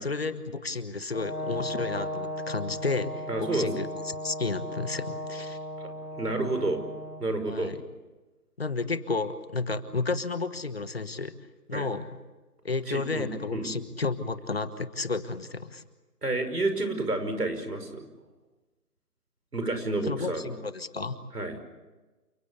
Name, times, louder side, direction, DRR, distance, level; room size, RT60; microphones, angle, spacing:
voice 1, 0.0-5.6 7.5-7.8 8.6-11.3 11.7-12.1 12.6-15.8 20.0-21.1, left 3 dB, 40° left, 12 dB, 1.3 m, -32 dB
Brass instrument, 1.1-7.2, left 1 dB, 85° left, 3.8 m, -36 dB
voice 2, 3.3-3.7 6.2-6.8 7.2-7.8 11.7-11.9 12.9-13.7 16.2-18.1 19.5-20.4 21.3-21.6, right 2 dB, 85° right, 8 dB, 5.6 m, -30 dB
29.0 x 17.0 x 8.3 m, 1.2 s
figure-of-eight pair, 170°, 46 cm